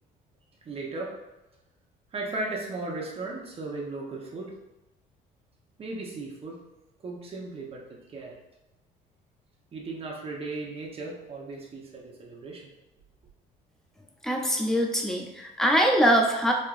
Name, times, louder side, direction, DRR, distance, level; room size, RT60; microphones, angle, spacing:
voice 1, 0.6-1.1 2.1-4.6 5.8-6.6 7.0-8.4 9.7-12.7, right 2 dB, 35° right, -2 dB, 1.0 m, -36 dB
voice 2, 14.2-16.5, equal, 5° left, 0 dB, 0.6 m, -23 dB
4.3 x 2.9 x 2.6 m, 1.0 s
cardioid pair, 110°, 17 cm